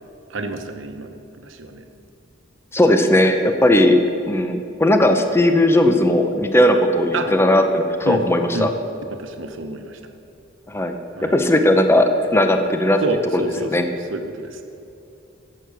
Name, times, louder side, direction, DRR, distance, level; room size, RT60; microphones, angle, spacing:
voice 1, 0.3-1.8 3.7-3.9 7.1-7.3 8.0-8.2 8.5-8.7 9.1-10.0 11.2-11.4 13.0-14.6, right 2 dB, 75° right, 7 dB, 1.0 m, -28 dB
voice 2, 2.7-4.0 4.3-8.7 10.7-10.9 11.3-13.0 13.3-13.4 13.7-13.8, left 1 dB, 15° left, 6 dB, 0.7 m, -17 dB
11.0 x 7.7 x 6.7 m, 2.7 s
head